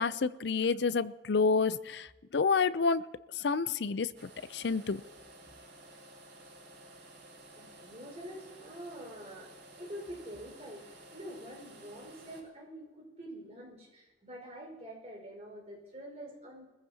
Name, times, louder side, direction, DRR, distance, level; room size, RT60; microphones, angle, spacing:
voice 1, 0.0-3.1 3.3-4.1 4.5-5.0, left 4 dB, 65° left, 0.5 m, -29 dB
sound 1, 4.1-12.4, right 1 dB, 65° right, 5.9 m, -53 dB
voice 2, 7.5-9.5 9.8-16.6, equal, 35° right, 5.2 m, -46 dB
24.0 x 15.0 x 2.9 m
head